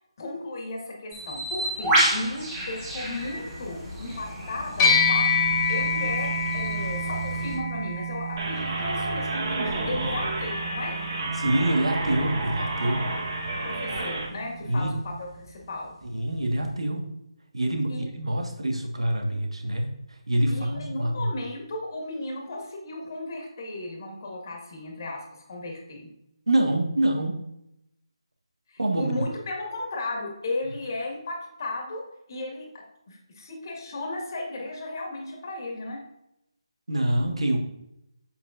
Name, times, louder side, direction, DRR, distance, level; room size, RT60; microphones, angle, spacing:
voice 1, 0.2-11.0 13.5-15.9 17.9-18.0 20.5-25.2 25.5-26.1 28.7-32.7 33.1-36.0, left 2 dB, 40° left, 0 dB, 1.8 m, -35 dB
Bird, 1.1-7.5, right 1 dB, 10° right, 1.8 m, -30 dB
sound 1, 4.8-14.4, left 3 dB, 15° left, 2.1 m, -28 dB
sound 2, 8.4-14.3, right 2 dB, 45° right, 1.9 m, -30 dB
voice 2, 11.3-13.1 14.7-15.0 16.0-17.1 17.5-21.3 26.5-27.5 28.8-29.2 36.9-37.6, right 1 dB, 80° right, 3 dB, 1.5 m, -26 dB
7.3 x 7.1 x 2.5 m, 0.82 s
figure-of-eight pair, 155°, 3 cm